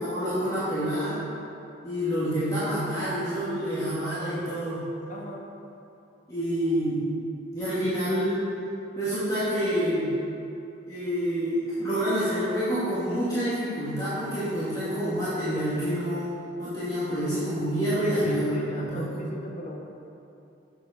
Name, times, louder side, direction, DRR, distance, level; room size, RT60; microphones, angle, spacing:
voice 1, 0.1-1.2 1.8-4.8 6.3-7.0 7.5-8.4 9.0-10.1 10.9-16.3 16.6-18.5 18.8-19.3, equal, 20° left, -13 dB, 2.1 m, -27 dB
voice 2, 5.1-5.4 18.0-19.8, left 1 dB, 40° left, -1 dB, 1.2 m, -38 dB
7.7 x 7.7 x 5.0 m, 2.8 s
head